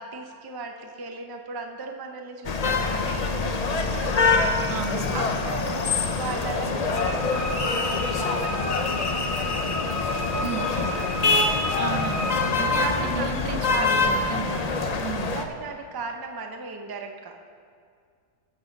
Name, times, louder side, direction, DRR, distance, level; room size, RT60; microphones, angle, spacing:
voice 1, 0.0-4.7 5.1-10.0 10.3-11.2 12.8-13.2 13.7-13.9 14.8-15.1 15.3-17.4, right 4 dB, 25° right, 4 dB, 0.5 m, -37 dB
sound 1, 2.4-15.4, left 4 dB, 70° left, 0.3 m, -25 dB
voice 2, 4.7-5.1 10.4-10.6 11.8-14.7 15.0-15.4, right 8 dB, 80° right, 10 dB, 1.2 m, -34 dB
Wind instrument woodwind instrument, 6.9-12.4, left 1 dB, 35° left, 1.4 m, -33 dB
15.0 x 6.3 x 6.6 m, 2.2 s
omnidirectional pair, 1.7 m